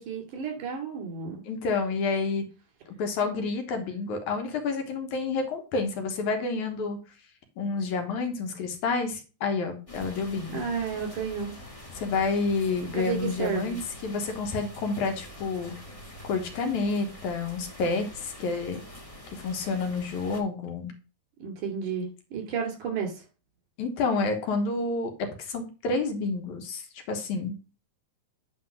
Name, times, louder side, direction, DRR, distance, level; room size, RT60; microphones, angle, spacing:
voice 1, 0.0-1.4 10.5-11.5 12.9-13.8 21.4-23.2, right 6 dB, 80° right, 2 dB, 4.0 m, -32 dB
voice 2, 1.5-2.4 2.9-7.0 7.6-10.6 12.0-13.8 14.0-15.7 16.2-18.8 19.3-20.9 23.8-27.5, left 4 dB, 75° left, 5 dB, 2.6 m, -29 dB
sound 1, 9.9-20.4, left 1 dB, 25° left, 0.7 m, -45 dB
9.6 x 3.4 x 6.1 m, 0.34 s
omnidirectional pair, 3.5 m